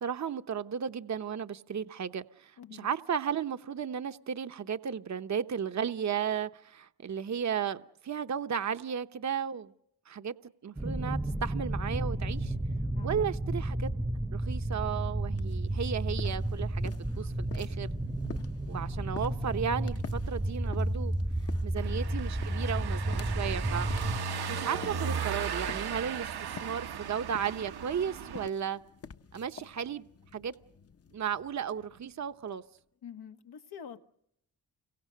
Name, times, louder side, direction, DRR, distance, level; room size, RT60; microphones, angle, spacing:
voice 1, 0.0-9.7 10.1-10.3 10.6-12.5 13.0-13.9 14.3-17.9 18.7-21.1 21.6-23.9 24.5-28.8 29.3-30.0 30.3-30.5 31.1-32.6, right 7 dB, 45° right, 0.9 m, -34 dB
voice 2, 2.6-2.9 12.9-13.2 21.7-22.0 24.3-24.6 33.0-34.0, left 8 dB, 90° left, 1.6 m, -47 dB
sound 1, 10.8-24.2, right 1 dB, 10° right, 0.9 m, -32 dB
sound 2, 15.3-32.8, left 6 dB, 40° left, 0.9 m, -50 dB
Car passing by / Engine, 21.8-28.5, right 6 dB, 80° right, 1.2 m, -36 dB
29.5 x 24.0 x 6.4 m
cardioid pair, 95°, 38 cm